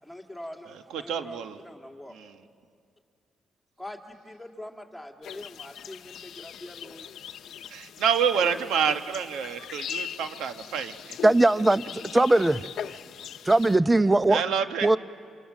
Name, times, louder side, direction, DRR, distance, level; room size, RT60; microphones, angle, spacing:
voice 1, 0.0-2.1 3.8-7.1, left 1 dB, ahead, 2 dB, 2.8 m, -43 dB
voice 2, 0.9-1.6 2.1-2.3 7.7-11.2 14.3-14.9, right 7 dB, 85° right, 8 dB, 1.3 m, -28 dB
sound 1, 5.2-13.8, left 9 dB, 75° left, 0.7 m, -41 dB
voice 3, 11.2-12.6 13.5-14.4 14.8-15.0, right 2 dB, 15° right, 15 dB, 0.7 m, -20 dB
29.5 x 26.0 x 7.4 m, 2.3 s
cardioid pair, 80°, 0 cm